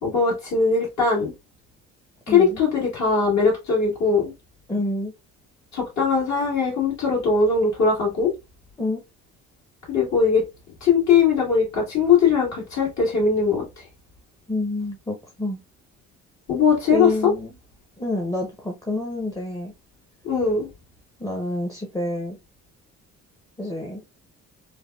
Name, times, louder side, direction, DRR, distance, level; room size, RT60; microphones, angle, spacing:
voice 1, 0.0-1.3 2.3-4.3 5.7-8.3 9.9-10.4 10.8-13.6 16.5-17.3 20.2-20.7, left 5 dB, 65° left, 1.6 m, -20 dB
voice 2, 2.3-2.6 4.7-5.1 8.8-9.0 14.5-15.6 16.9-17.5 18.0-19.7 21.2-22.4 23.6-24.0, left 2 dB, 10° left, 0.6 m, -28 dB
3.3 x 2.2 x 2.2 m
cardioid pair, 90°, 30 cm